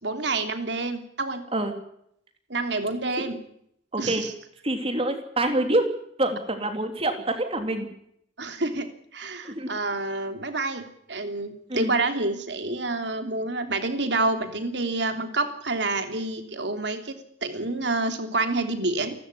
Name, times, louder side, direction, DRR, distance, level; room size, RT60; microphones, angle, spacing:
voice 1, 0.0-1.4 2.5-3.4 4.0-4.3 8.4-8.9 9.1-17.1 17.4-19.1, right 2 dB, 65° right, 7 dB, 3.2 m, -28 dB
voice 2, 3.9-4.2 4.6-5.9 6.2-7.9 9.4-9.7 11.7-11.9, right 1 dB, 30° right, 6 dB, 3.3 m, -26 dB
29.0 x 13.0 x 9.8 m, 0.71 s
head